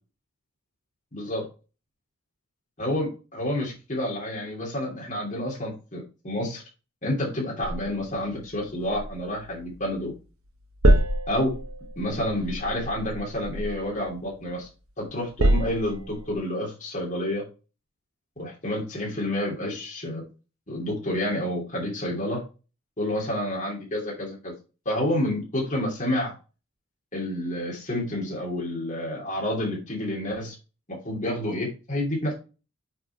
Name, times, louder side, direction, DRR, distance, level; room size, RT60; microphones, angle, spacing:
voice 1, 1.1-1.4 2.8-6.6 7.0-10.1 11.3-11.6 12.0-14.7 15.0-17.4 18.4-20.2 20.7-22.4 23.0-24.5 24.8-26.3 27.1-30.5 30.9-32.3, left 1 dB, 35° left, -3 dB, 2.9 m, -29 dB
sound 1, 7.6-10.2 10.4-14.7 15.1-16.4, right 1 dB, 70° right, 1.2 m, -27 dB
7.6 x 3.9 x 4.5 m, 0.32 s
head